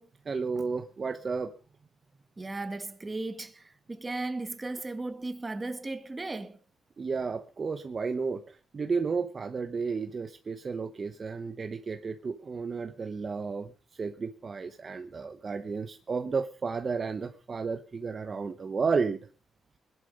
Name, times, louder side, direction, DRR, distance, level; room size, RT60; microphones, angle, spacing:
voice 1, 0.3-1.5 7.0-13.7 14.0-19.2, right 5 dB, 30° right, 1.0 m, -32 dB
voice 2, 2.4-6.6, right 2 dB, 15° right, 1.5 m, -36 dB
21.5 x 11.5 x 5.2 m
cardioid pair, 140°, 0 cm